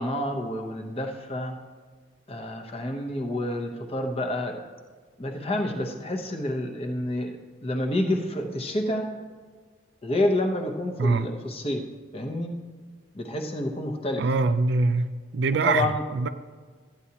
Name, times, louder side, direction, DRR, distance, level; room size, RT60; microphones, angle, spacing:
voice 1, 0.0-1.6 2.3-4.6 5.2-9.1 10.0-11.8 12.1-12.5 13.1-14.2 15.6-16.0, left 1 dB, 30° left, 0.7 m, -28 dB
voice 2, 14.2-16.3, right 3 dB, 60° right, 0.3 m, -24 dB
12.5 x 9.3 x 2.9 m
head